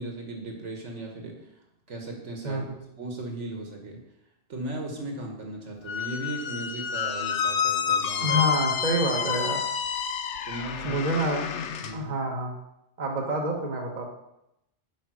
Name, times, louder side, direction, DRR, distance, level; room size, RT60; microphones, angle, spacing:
voice 1, 0.0-1.5 1.9-2.7 3.0-4.0 4.5-8.4 10.4-11.1 11.8-12.1, right 2 dB, 70° right, 1 dB, 1.7 m, -37 dB
voice 2, 2.4-2.8 8.2-9.6 10.8-11.4 11.9-12.6 13.0-14.1, right 1 dB, 40° right, 0 dB, 1.2 m, -27 dB
Squeak, 5.9-11.9, left 7 dB, 70° left, 0.9 m, -29 dB
8.4 x 5.4 x 4.8 m, 0.85 s
omnidirectional pair, 1.3 m